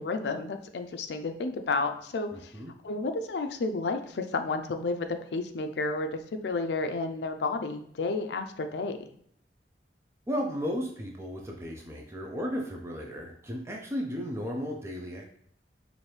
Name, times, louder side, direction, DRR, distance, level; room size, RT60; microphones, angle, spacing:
voice 1, 0.0-2.5 2.8-9.1, left 3 dB, 75° left, 7 dB, 0.4 m, -31 dB
voice 2, 2.3-2.7 10.3-15.3, equal, 15° right, 0 dB, 0.4 m, -34 dB
4.3 x 2.6 x 3.2 m, 0.65 s
head